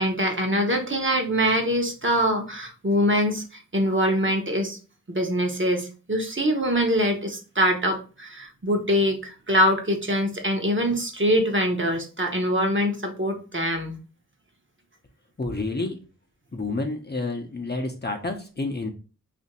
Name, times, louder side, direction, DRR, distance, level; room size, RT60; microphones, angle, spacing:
voice 1, 0.0-3.4 3.7-4.8 5.1-14.0, equal, 35° right, 3 dB, 0.9 m, -24 dB
voice 2, 15.4-16.0 16.5-18.9, left 2 dB, 30° left, 2 dB, 0.7 m, -29 dB
2.8 x 2.5 x 4.1 m, 0.35 s
wide cardioid pair, 40°, 33 cm